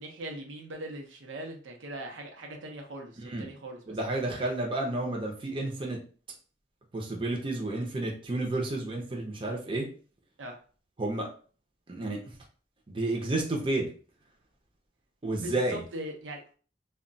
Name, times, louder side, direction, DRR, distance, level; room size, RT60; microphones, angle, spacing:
voice 1, 0.0-4.0 10.4-10.6 15.4-16.4, right 1 dB, 85° right, 2 dB, 0.7 m, -40 dB
voice 2, 3.2-3.5 3.9-6.0 6.9-9.9 11.0-11.3 11.9-12.4 12.9-13.9 15.2-15.8, right 2 dB, 30° right, -1 dB, 0.6 m, -31 dB
2.3 x 2.2 x 3.8 m, 0.40 s
head